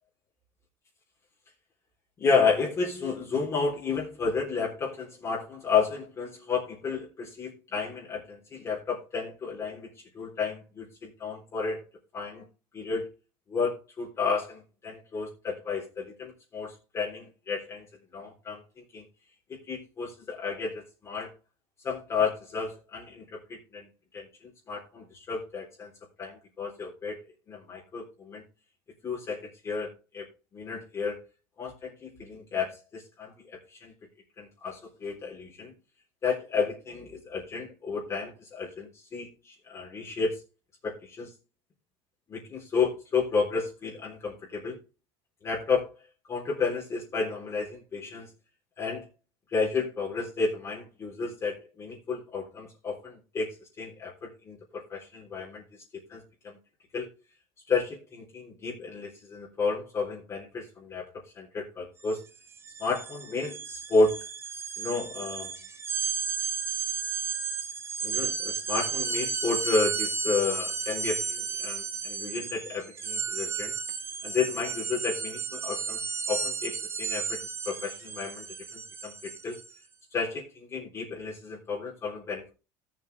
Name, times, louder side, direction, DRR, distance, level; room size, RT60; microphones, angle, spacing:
voice 1, 2.2-11.8 12.1-12.4 12.7-13.1 13.5-17.9 18.1-19.0 19.5-21.3 21.8-23.9 24.1-25.9 26.2-27.2 27.5-28.4 29.0-30.2 30.5-31.2 31.6-33.3 33.7-33.9 34.4-35.7 36.2-40.4 40.8-41.3 42.3-44.8 45.4-45.9 46.3-48.3 48.8-49.1 49.5-55.8 56.1-56.6 56.9-57.1 57.7-61.1 61.3-62.2 62.8-64.2 64.8-65.5 68.0-73.7 74.2-76.0 76.3-78.5 78.7-79.6 80.1-82.5, left 4 dB, 25° left, -3 dB, 3.7 m, -32 dB
sound 1, 62.0-62.2 62.5-79.7, right 5 dB, 20° right, 1.5 m, -33 dB
17.5 x 7.5 x 3.4 m, 0.31 s
cardioid pair, 155°, 11 cm